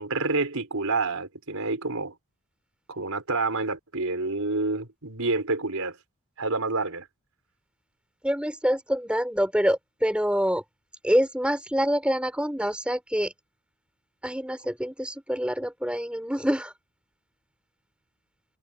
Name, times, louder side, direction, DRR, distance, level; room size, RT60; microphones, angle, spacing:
voice 1, 0.0-2.1 2.9-6.0 6.4-7.1, right 3 dB, 75° right, 4.3 m, -28 dB
voice 2, 8.2-10.6 11.0-13.3 14.2-16.7, equal, 5° right, 5.3 m, -26 dB
head